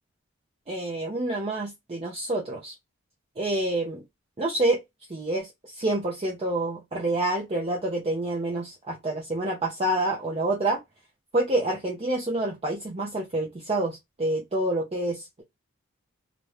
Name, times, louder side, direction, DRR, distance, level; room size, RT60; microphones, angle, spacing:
voice 1, 0.7-2.7 3.4-4.0 4.4-4.8 5.1-10.8 11.3-15.4, right 1 dB, 30° right, 0.5 m, -27 dB
2.6 x 2.1 x 3.0 m
head